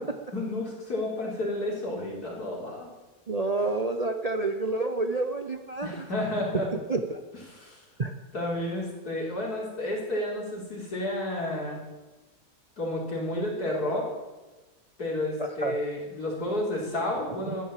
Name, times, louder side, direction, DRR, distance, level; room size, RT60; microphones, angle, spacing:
voice 1, 0.3-2.9 5.8-6.7 7.5-7.8 8.3-11.8 12.8-14.1 15.0-17.6, left 1 dB, 75° left, -3 dB, 4.7 m, -31 dB
voice 2, 3.3-6.1 6.9-7.2 8.0-8.1 15.4-15.7 17.5-17.6, right 3 dB, 35° right, 6 dB, 0.7 m, -29 dB
13.5 x 10.5 x 7.4 m, 1.2 s
omnidirectional pair, 1.6 m